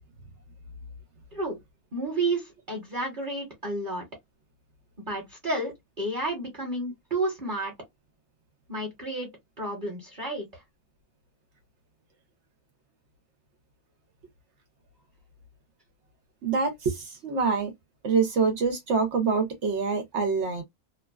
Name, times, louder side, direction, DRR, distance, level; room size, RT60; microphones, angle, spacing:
voice 1, 1.9-4.0 5.0-7.7 8.7-9.3 9.6-10.5, right 2 dB, 35° right, 1.1 m, -31 dB
voice 2, 16.4-17.7 18.0-20.6, right 5 dB, 55° right, 0.9 m, -25 dB
2.9 x 2.2 x 2.2 m
omnidirectional pair, 1.6 m